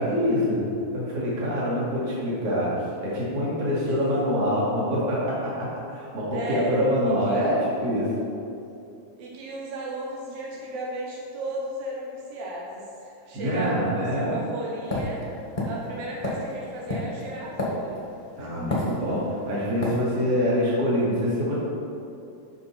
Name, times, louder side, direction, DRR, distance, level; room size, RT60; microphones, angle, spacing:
voice 1, 0.0-2.7 3.0-8.0 13.3-14.4 18.4-21.6, equal, 45° right, -7 dB, 3.1 m, -25 dB
voice 2, 6.3-7.5 9.2-15.2 15.6-18.0 18.4-18.8, right 1 dB, 80° right, -3 dB, 2.9 m, -35 dB
sound 1, 14.9-18.2 18.7-19.4 19.8-20.0, left 1 dB, 50° left, 0.5 m, -29 dB
11.0 x 6.2 x 4.4 m, 2.7 s
omnidirectional pair, 4.1 m